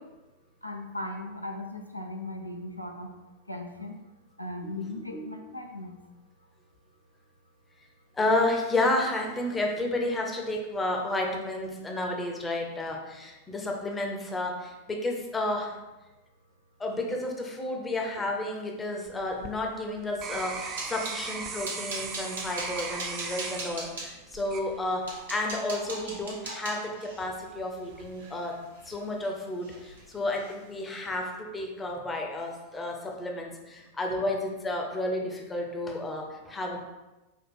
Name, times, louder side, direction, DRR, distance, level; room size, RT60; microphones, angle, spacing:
voice 1, 0.6-3.1 3.5-3.9 4.4-5.9, left 2 dB, 90° left, 2 dB, 0.4 m, -37 dB
voice 2, 4.6-5.3 8.1-15.8 16.8-28.6 28.9-36.8, left 2 dB, 15° left, 1 dB, 0.7 m, -31 dB
sound 1, 19.1-25.3 25.8-26.3, right 5 dB, 30° right, 0.4 m, -39 dB
sound 2, 20.3-21.2 21.6-24.1 24.7-24.8 25.1-29.3 29.6-30.0 30.3-30.5 30.9-31.1, right 2 dB, 65° right, 1.0 m, -40 dB
4.5 x 2.3 x 4.4 m, 1.1 s
figure-of-eight pair, 90°, 0 cm